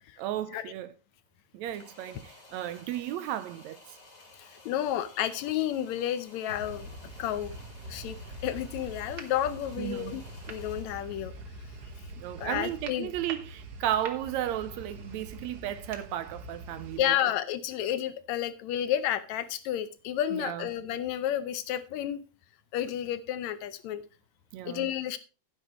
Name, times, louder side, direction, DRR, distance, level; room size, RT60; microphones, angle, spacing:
voice 1, 0.2-0.9 1.5-4.0 9.8-10.2 12.2-17.3 20.3-20.7 24.5-24.9, right 12 dB, 80° right, 1.8 m, -34 dB
sound 1, 1.6-11.2, left 2 dB, 30° left, 2.5 m, -54 dB
voice 2, 4.4-6.9 7.2-7.6 7.9-10.2 10.5-11.3 12.4-13.1 17.0-22.2 22.7-24.0 24.6-25.2, left 11 dB, 75° left, 1.9 m, -31 dB
sound 2, 6.5-17.0, right 2 dB, 55° right, 1.1 m, -44 dB
11.5 x 10.5 x 3.1 m
omnidirectional pair, 3.5 m